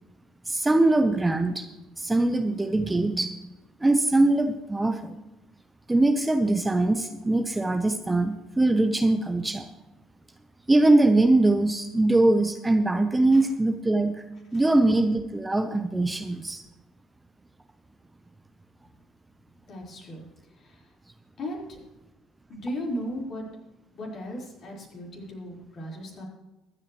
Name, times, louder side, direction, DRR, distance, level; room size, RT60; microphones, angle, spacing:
voice 1, 0.5-1.7 2.0-3.4 3.8-5.1 5.9-9.7 10.7-14.2 14.5-16.6, right 2 dB, 15° right, 7 dB, 1.0 m, -22 dB
voice 2, 19.7-20.2 20.6-20.8 21.4-21.8 22.5-23.4 23.9-26.2, equal, 50° left, -2 dB, 4.7 m, -36 dB
23.5 x 8.9 x 3.2 m, 1.0 s
figure-of-eight pair, 55°, 0 cm